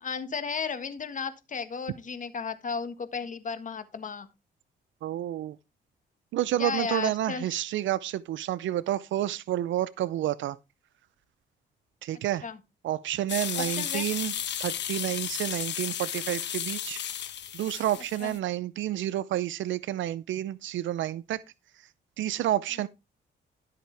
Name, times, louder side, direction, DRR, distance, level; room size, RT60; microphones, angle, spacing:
voice 1, 0.0-4.3 6.6-7.5 12.4-12.6 13.5-14.0 18.2-18.4, left 5 dB, 40° left, 1.5 m, -34 dB
voice 2, 5.0-5.6 6.3-10.6 12.0-12.4 12.8-14.3 14.6-17.0 17.5-21.4 22.2-22.9, right 13 dB, 70° right, 0.5 m, -30 dB
sound 1, 13.3-18.4, left 10 dB, 60° left, 1.2 m, -34 dB
13.0 x 7.6 x 3.4 m
cardioid pair, 90°, 20 cm